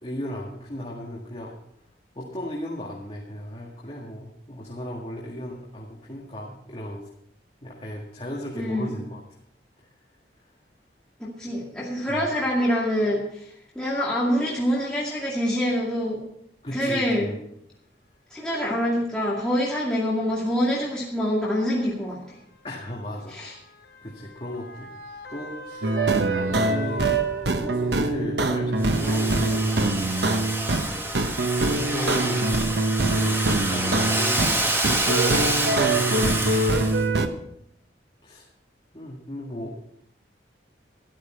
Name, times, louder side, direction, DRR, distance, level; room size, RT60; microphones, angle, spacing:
voice 1, 0.0-1.5 2.1-7.1 7.6-9.2 10.4-10.5 12.1-12.2 16.6-17.4 22.6-23.4 24.0-24.9 25.3-26.0 26.3-27.1 27.6-29.7 30.7-31.1 31.7-32.6 33.0-36.6 38.2-38.5 38.9-39.8, equal, 30° left, -3 dB, 1.9 m, -36 dB
voice 2, 8.5-9.0 11.2-16.2 16.7-17.3 18.3-22.4 23.3-23.6, equal, 5° left, -6 dB, 2.3 m, -25 dB
Motor vehicle (road) / Siren, 18.0-18.1 19.1-19.3 20.4-28.0 28.4-28.5, left 2 dB, 75° left, 3.1 m, -43 dB
sound 1, 25.8-30.9 31.1-34.6 34.8-37.3, right 2 dB, 70° right, 1.0 m, -24 dB
Domestic sounds home sounds, 28.8-37.0, right 1 dB, 15° right, 1.4 m, -27 dB
13.0 x 11.5 x 4.5 m, 0.74 s
head